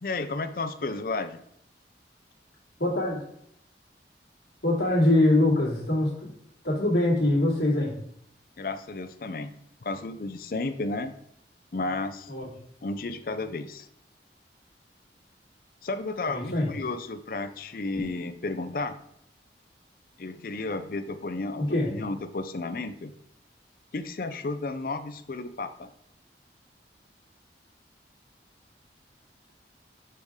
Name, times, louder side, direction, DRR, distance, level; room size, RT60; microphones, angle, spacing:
voice 1, 0.0-1.4 8.6-9.5 9.8-11.1 11.7-12.3 12.8-13.9 15.8-19.0 20.2-23.1 23.9-25.9, left 3 dB, 50° left, 10 dB, 0.5 m, -33 dB
voice 2, 2.8-3.3 4.6-6.3 6.6-8.0 12.3-12.5 16.3-16.7 21.7-21.9, left 1 dB, 65° left, -6 dB, 2.5 m, -23 dB
6.8 x 4.8 x 3.6 m, 0.72 s
head